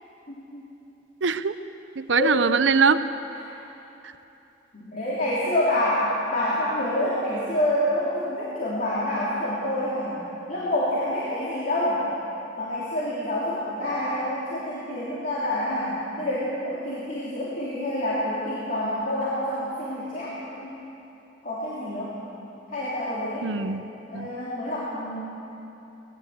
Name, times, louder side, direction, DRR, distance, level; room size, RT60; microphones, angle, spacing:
voice 1, 0.3-0.7 2.1-2.4 3.3-3.5 4.7-10.2 10.5-12.0 12.6-20.7 21.4-22.1 22.7-23.5 24.1-25.2, left 1 dB, 50° left, -8 dB, 3.4 m, -27 dB
voice 2, 1.2-1.5 2.0-3.1 23.4-23.8 24.1-24.3, right 5 dB, 85° right, 12 dB, 0.7 m, -22 dB
19.5 x 17.0 x 7.8 m, 3.0 s
head